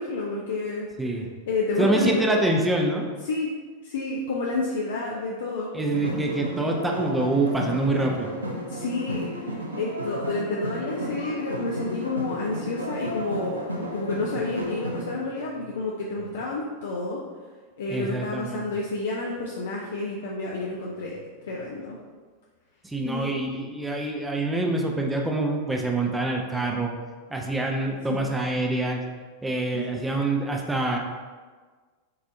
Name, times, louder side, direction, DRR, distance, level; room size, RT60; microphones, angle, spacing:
voice 1, 0.0-0.9 1.5-2.3 3.2-3.5 3.8-5.7 8.7-17.2 17.8-22.0 23.0-23.3 28.1-28.2 29.7-29.9, left 3 dB, 60° left, -3 dB, 0.4 m, -30 dB
voice 2, 1.8-3.1 5.7-8.3 17.9-18.6 22.8-26.9 27.3-29.0 29.4-31.0, right 2 dB, 10° right, 1 dB, 0.5 m, -25 dB
sound 1, 5.9-15.1, equal, 80° right, 0.5 m, -33 dB
5.5 x 2.5 x 2.6 m, 1.4 s
figure-of-eight pair, 90°, 0 cm